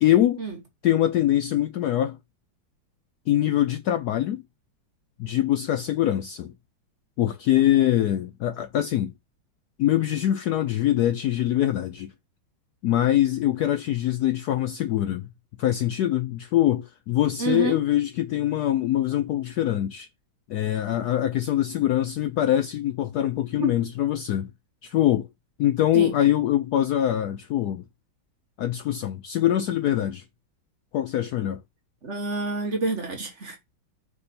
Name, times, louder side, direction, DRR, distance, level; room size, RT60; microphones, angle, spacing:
voice 1, 0.0-0.4 0.8-2.2 3.3-4.4 5.2-6.5 7.2-9.1 9.8-12.1 12.8-15.2 15.6-20.1 20.5-24.5 24.8-25.3 25.6-27.8 28.6-30.2 30.9-31.6, left 12 dB, 85° left, 0.8 m, -23 dB
voice 2, 17.4-17.8 23.6-23.7 25.9-26.2 32.0-33.6, right 3 dB, 40° right, 1.3 m, -28 dB
4.8 x 4.8 x 4.2 m
omnidirectional pair, 2.2 m